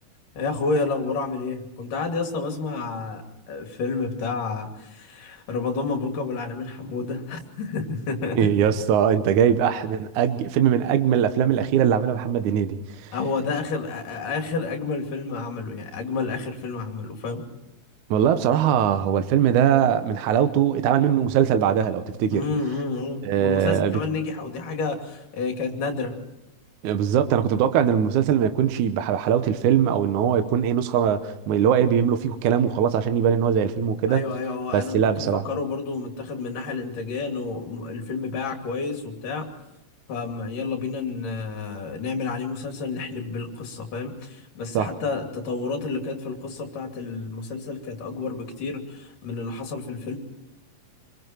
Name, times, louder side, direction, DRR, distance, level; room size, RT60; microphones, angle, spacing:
voice 1, 0.4-8.5 13.1-17.4 22.3-26.2 34.1-39.5 40.1-50.2, left 4 dB, 70° left, 4.2 m, -30 dB
voice 2, 8.4-13.1 18.1-22.4 23.2-24.0 26.8-34.2 34.7-35.4 44.7-44.9, right 9 dB, 70° right, 2.3 m, -21 dB
27.0 x 22.0 x 4.4 m
omnidirectional pair, 3.9 m